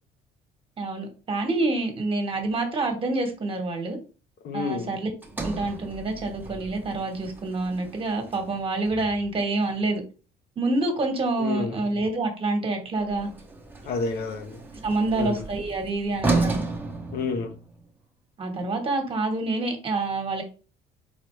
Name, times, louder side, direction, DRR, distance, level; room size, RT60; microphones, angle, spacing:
voice 1, 0.8-4.0 4.5-5.1 5.4-10.0 10.6-13.3 14.8-16.6 18.4-20.4, right 2 dB, 35° right, 1.3 m, -27 dB
voice 2, 4.4-4.9 11.4-11.8 13.8-14.6 15.1-15.4 17.1-17.5, left 4 dB, 70° left, 0.9 m, -29 dB
Sliding door, 5.2-9.5 13.0-17.9, right 3 dB, 10° right, 0.9 m, -33 dB
4.2 x 3.9 x 3.2 m
cardioid pair, 110°, 17 cm